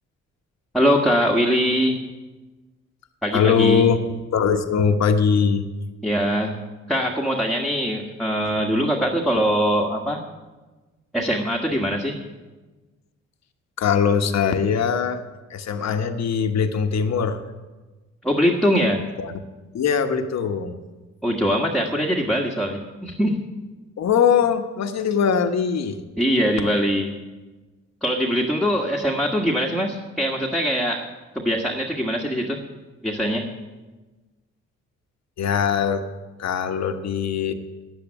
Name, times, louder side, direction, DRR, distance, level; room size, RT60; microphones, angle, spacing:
voice 1, 0.7-2.0 3.2-3.8 6.0-6.6 6.9-10.2 11.1-12.2 18.2-19.0 21.2-23.5 26.2-27.2 28.0-31.0 31.3-32.6 33.0-33.5, equal, ahead, -2 dB, 1.6 m, -22 dB
voice 2, 3.3-4.0 4.3-5.6 13.8-15.2 15.5-17.4 19.2-19.3 19.7-20.8 24.0-26.0 35.4-36.0 36.4-37.5, left 6 dB, 60° left, 7 dB, 1.3 m, -21 dB
9.7 x 9.3 x 9.8 m, 1.2 s
cardioid pair, 70°, 30 cm